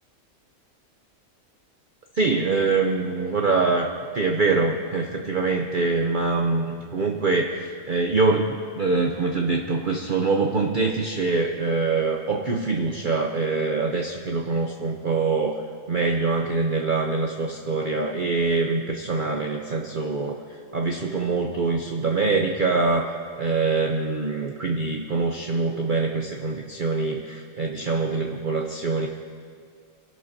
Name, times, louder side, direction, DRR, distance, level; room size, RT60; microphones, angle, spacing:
voice 1, 2.1-15.6 15.9-20.4 20.7-29.1, right 3 dB, 45° right, 2 dB, 0.8 m, -24 dB
26.0 x 12.0 x 2.8 m, 2.2 s
omnidirectional pair, 1.5 m